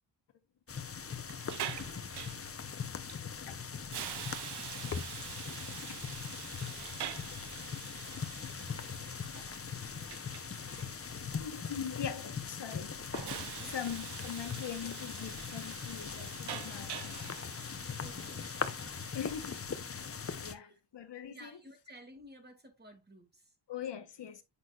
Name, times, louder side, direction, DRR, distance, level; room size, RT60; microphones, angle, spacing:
sound 1, 0.7-20.5, left 6 dB, 35° left, 0.7 m, -40 dB
Hiss, 1.0-19.6, right 11 dB, 70° right, 0.6 m, -46 dB
voice 1, 11.4-12.9 13.7-17.2 19.1-19.6 20.4-21.6 23.7-24.4, left 8 dB, 75° left, 1.1 m, -41 dB
voice 2, 18.0-18.5 20.2-20.8 21.3-23.5, right 1 dB, 25° right, 2.1 m, -54 dB
8.3 x 5.5 x 2.4 m
wide cardioid pair, 95°, 42 cm